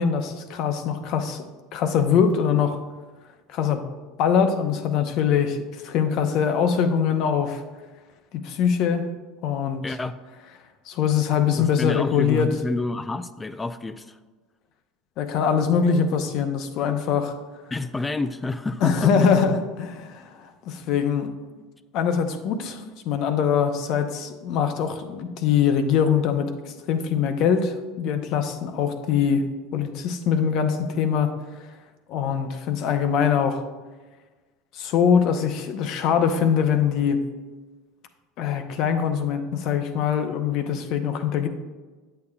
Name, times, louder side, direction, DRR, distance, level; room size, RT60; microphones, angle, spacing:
voice 1, 0.0-1.4 1.7-2.8 3.5-3.8 4.2-7.6 8.4-9.1 9.4-9.8 10.9-12.5 15.2-17.3 18.8-20.3 20.6-21.3 21.9-29.5 29.7-31.3 32.1-33.6 34.7-37.2 38.4-41.5, left 7 dB, 60° left, 8 dB, 0.7 m, -23 dB
voice 2, 9.8-10.2 11.5-14.2 17.7-19.3, left 2 dB, 15° left, 12 dB, 0.3 m, -29 dB
8.4 x 6.7 x 2.3 m, 1.3 s
hypercardioid pair, 90°, 0 cm